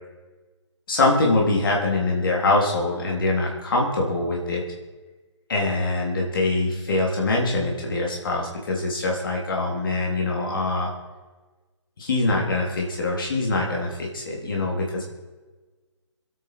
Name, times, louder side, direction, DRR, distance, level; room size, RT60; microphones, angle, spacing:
voice 1, 0.9-4.6 5.5-10.9 12.0-15.0, left 2 dB, 45° left, -1 dB, 3.3 m, -23 dB
23.0 x 9.4 x 4.7 m, 1.3 s
figure-of-eight pair, 140°, 15 cm